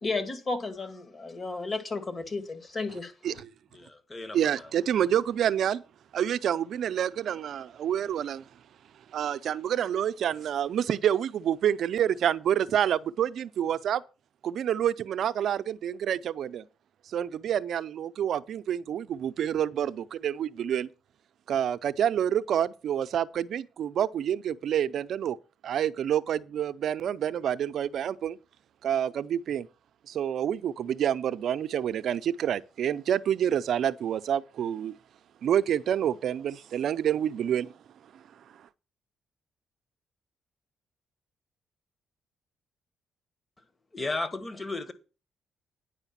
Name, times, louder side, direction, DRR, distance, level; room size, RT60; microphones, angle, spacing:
voice 1, 0.0-3.1, left 3 dB, 40° left, 2.0 m, -33 dB
voice 2, 3.7-5.0 43.9-44.9, left 2 dB, 25° left, 1.3 m, -35 dB
voice 3, 4.3-5.8 6.1-8.5 9.1-14.0 14.4-16.6 17.1-20.9 21.5-25.4 25.6-28.4 28.8-29.7 30.1-35.0 35.4-37.7 38.1-38.2, right 9 dB, 65° right, 0.5 m, -28 dB
9.9 x 5.0 x 7.3 m
cardioid pair, 90°, 0 cm